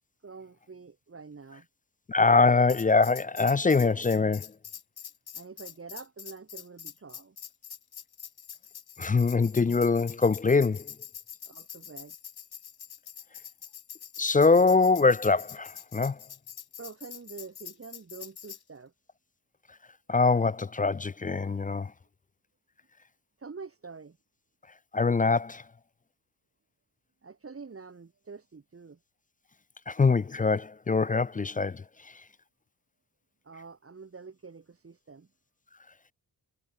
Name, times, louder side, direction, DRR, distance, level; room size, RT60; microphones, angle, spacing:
voice 1, 0.2-1.7 5.3-7.4 11.4-12.2 16.8-18.9 23.4-24.2 27.2-29.0 33.4-35.3, right 4 dB, 30° right, 2.3 m, -46 dB
voice 2, 2.1-4.5 9.0-10.9 14.2-16.2 20.1-21.9 24.9-25.6 29.9-31.8, left 4 dB, 20° left, 0.4 m, -23 dB
Tambourine, 2.7-18.6, left 8 dB, 65° left, 2.3 m, -45 dB
cardioid pair, 95°, 42 cm